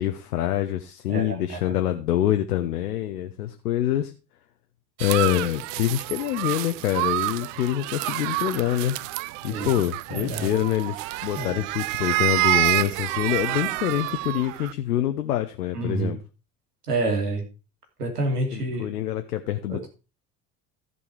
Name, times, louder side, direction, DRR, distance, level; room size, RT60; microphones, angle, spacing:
voice 1, 0.0-4.1 5.0-9.0 9.4-11.0 11.2-16.2 18.5-19.9, left 12 dB, 75° left, 8 dB, 0.9 m, -26 dB
voice 2, 1.1-1.7 9.5-9.7 10.1-10.6 11.3-11.7 15.7-16.2 16.9-17.4 18.0-18.9 19.7-19.9, right 2 dB, 80° right, 2 dB, 3.0 m, -28 dB
sound 1, 5.0-14.7, right 20 dB, 55° right, 0.5 m, -28 dB
15.0 x 5.5 x 4.7 m, 0.32 s
figure-of-eight pair, 60°, 46 cm